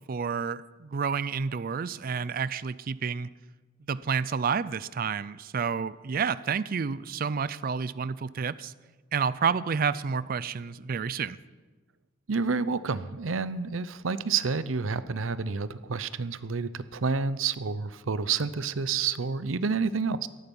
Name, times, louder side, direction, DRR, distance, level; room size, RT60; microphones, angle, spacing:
voice 1, 0.1-3.3 3.9-8.7 9.1-11.4, right 6 dB, 45° right, 17 dB, 0.4 m, -30 dB
voice 2, 12.3-20.3, right 5 dB, 85° right, 15 dB, 0.7 m, -29 dB
18.0 x 13.5 x 5.5 m, 1.3 s
head